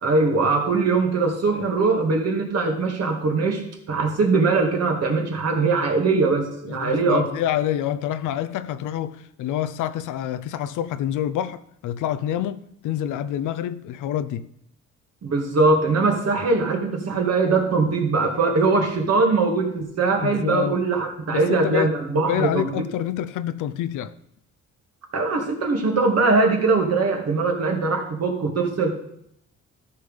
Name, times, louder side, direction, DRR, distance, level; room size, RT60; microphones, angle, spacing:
voice 1, 0.0-3.6 3.9-7.2 15.2-22.7 25.1-28.9, right 3 dB, 55° right, 2.2 m, -21 dB
voice 2, 6.6-14.5 20.2-20.8 21.3-21.9 22.3-24.1, left 11 dB, 85° left, 0.6 m, -27 dB
13.0 x 5.2 x 5.5 m
cardioid pair, 90°, 30 cm